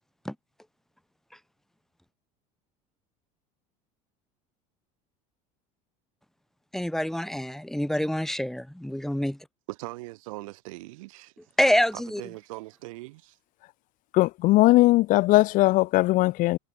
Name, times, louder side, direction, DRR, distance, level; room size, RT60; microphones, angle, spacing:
voice 1, 6.7-9.5 11.6-12.2, equal, ahead, 4.8 m, -26 dB
voice 2, 9.7-11.5 11.9-13.4, right 22 dB, 85° right, 6.7 m, -41 dB
voice 3, 14.1-16.6, left 18 dB, 50° left, 0.7 m, -19 dB
supercardioid pair, 125°, 17 cm